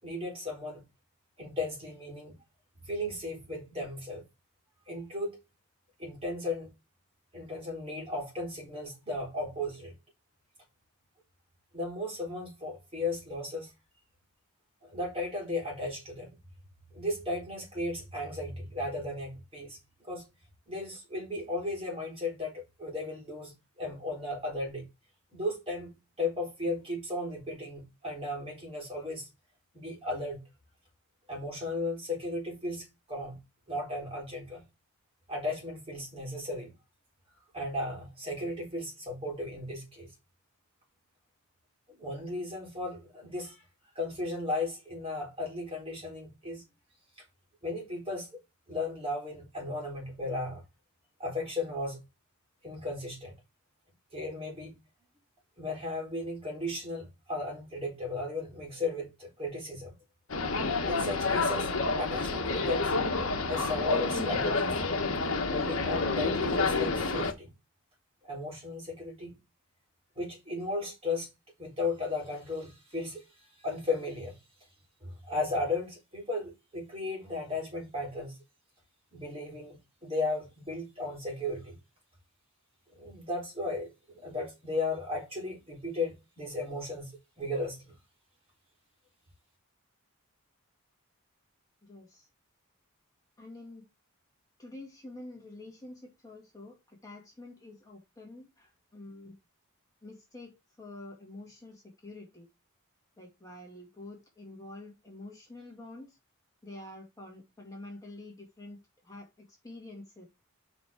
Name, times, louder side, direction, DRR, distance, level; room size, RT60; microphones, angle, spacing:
voice 1, 0.0-0.8 1.4-2.4 2.8-4.2 4.9-5.4 6.0-6.7 7.3-9.9 11.7-13.7 14.8-16.3 16.9-19.8 20.1-20.3 20.7-24.9 25.3-29.3 29.7-30.4 31.3-33.4 33.7-34.6 35.3-36.7 37.5-40.1 41.9-43.6 44.0-46.6 47.6-48.4 48.7-50.6 51.2-52.0 52.6-53.3 54.1-54.8 55.6-59.9 60.8-62.9 63.5-64.8 65.5-67.5 68.3-69.4 70.2-71.3 71.6-73.2 73.6-74.4 75.0-78.4 79.1-81.8 82.9-83.9 84.2-87.9, left 2 dB, 25° right, 3.8 m, -35 dB
sound 1, 60.3-67.3, left 3 dB, 65° left, 1.2 m, -29 dB
voice 2, 91.8-92.3 93.4-93.9 94.6-99.4 100.0-102.5 103.2-106.2 106.6-108.8 109.0-110.2, left 2 dB, 15° left, 2.1 m, -47 dB
7.9 x 5.3 x 3.6 m
head